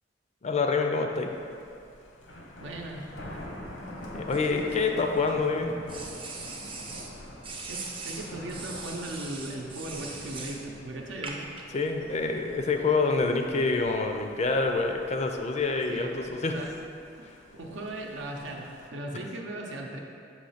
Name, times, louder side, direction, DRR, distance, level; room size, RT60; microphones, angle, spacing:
voice 1, 0.4-1.3 4.1-5.7 11.7-16.5, left 4 dB, 35° left, 4 dB, 0.4 m, -27 dB
Thunder, 1.1-18.9, left 1 dB, 90° left, 0.9 m, -46 dB
voice 2, 2.6-3.0 7.7-11.4 15.9-16.7 17.2-17.3 17.5-20.0, right 1 dB, 75° right, 0 dB, 0.7 m, -38 dB
sound 1, 4.3-5.3 5.9-7.1 7.4-10.6 11.2-11.6, right 4 dB, 30° right, 0.6 m, -40 dB
6.2 x 3.1 x 5.6 m, 2.5 s
head